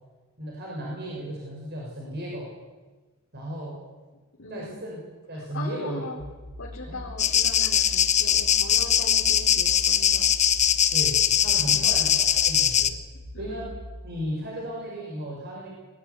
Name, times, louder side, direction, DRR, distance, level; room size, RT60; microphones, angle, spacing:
voice 1, 0.4-2.5 3.3-3.8 4.5-5.0 5.3-6.2 6.9-7.0 10.9-12.9 13.4-13.7 14.0-15.7, right 1 dB, 50° right, -3 dB, 6.6 m, -35 dB
voice 2, 4.4-4.8 5.3-6.2 6.6-10.3 11.6-12.0 13.3-13.7, left 2 dB, 60° left, -5 dB, 4.1 m, -40 dB
sound 1, 6.2-13.9, left 1 dB, 70° right, 5.6 m, -41 dB
sound 2, 7.2-12.9, left 9 dB, 35° left, 1.0 m, -21 dB
23.5 x 16.0 x 9.9 m, 1.2 s
head